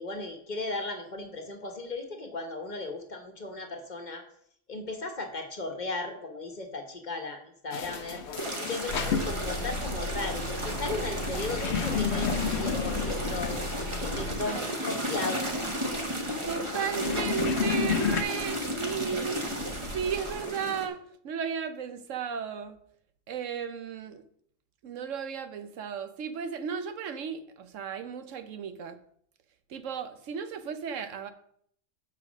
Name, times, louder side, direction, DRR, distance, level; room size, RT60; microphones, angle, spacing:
voice 1, 0.0-4.2 4.7-8.2 8.6-13.6 14.0-15.5, left 2 dB, 40° left, 1.2 m, -36 dB
sound 1, 7.7-18.2, left 7 dB, 65° left, 1.0 m, -33 dB
sound 2, 8.4-20.9, equal, 25° right, 1.2 m, -34 dB
sound 3, 8.9-14.4, left 1 dB, 85° left, 1.8 m, -35 dB
voice 2, 16.5-19.4 19.9-22.8 23.3-24.2 24.8-29.0 29.7-31.3, right 7 dB, 80° right, 1.1 m, -34 dB
7.1 x 5.8 x 6.1 m
omnidirectional pair, 1.3 m